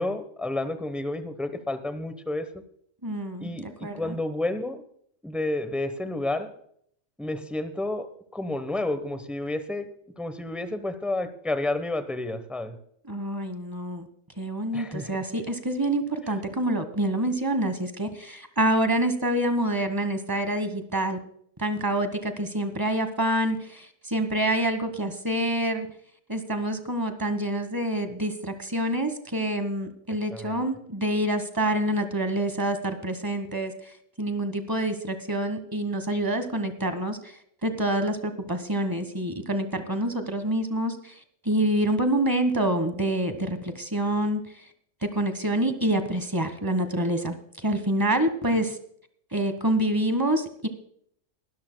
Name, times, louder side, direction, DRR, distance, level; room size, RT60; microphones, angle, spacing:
voice 1, 0.0-2.5 3.4-4.8 5.2-6.5 7.2-12.8 14.7-15.2 30.3-30.6 48.5-48.6, left 2 dB, ahead, 10 dB, 0.8 m, -31 dB
voice 2, 3.0-4.1 13.0-14.1 14.4-21.2 21.6-25.9 26.3-33.7 34.2-41.1 41.4-44.4 45.0-48.8 49.3-50.7, right 1 dB, 15° right, 8 dB, 1.3 m, -27 dB
21.5 x 13.0 x 2.3 m, 0.66 s
omnidirectional pair, 1.3 m